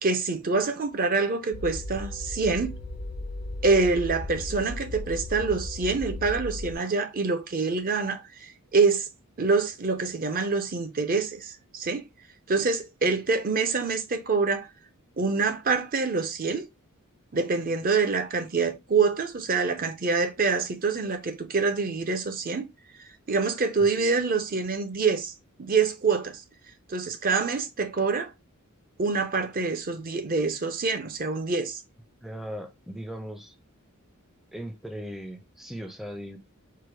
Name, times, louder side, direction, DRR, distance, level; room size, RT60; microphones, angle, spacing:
voice 1, 0.0-2.7 3.6-9.1 9.4-12.0 12.5-14.7 15.2-16.7 17.3-22.7 23.3-25.3 25.6-26.4 26.9-28.3 29.0-31.8, right 4 dB, 40° right, 0.7 m, -26 dB
sound 1, 1.5-6.8, left 2 dB, 45° left, 0.5 m, -36 dB
voice 2, 32.2-33.5 34.5-36.4, equal, ahead, 0.5 m, -38 dB
4.8 x 2.2 x 4.7 m
head